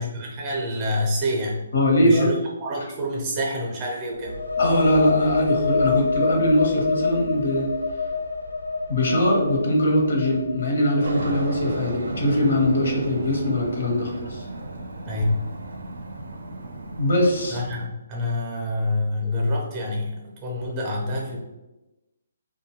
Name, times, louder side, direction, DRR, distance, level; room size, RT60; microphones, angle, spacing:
voice 1, 0.0-1.6 2.0-2.3 2.6-4.3 15.0-15.5 17.5-21.4, left 1 dB, 20° right, -2 dB, 0.5 m, -27 dB
voice 2, 1.7-2.3 4.6-7.7 8.9-14.5 17.0-17.6, left 1 dB, 70° left, 0 dB, 0.8 m, -21 dB
sound 1, 4.1-11.7, left 5 dB, 90° left, 0.3 m, -27 dB
Aircraft, 11.0-17.9, right 2 dB, 80° right, 0.4 m, -35 dB
2.5 x 2.2 x 2.8 m, 1.0 s
hypercardioid pair, 170°, 0 cm